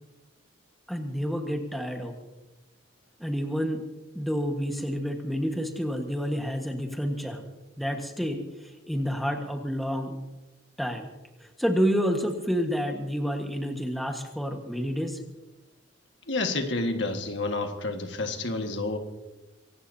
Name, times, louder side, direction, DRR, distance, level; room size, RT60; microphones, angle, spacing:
voice 1, 0.9-2.1 3.2-3.8 4.1-7.4 7.8-10.1 10.8-11.1 11.4-15.2, equal, ahead, 3 dB, 1.4 m, -29 dB
voice 2, 16.3-19.0, left 2 dB, 70° left, 5 dB, 1.7 m, -29 dB
24.5 x 18.0 x 2.8 m, 1.1 s
head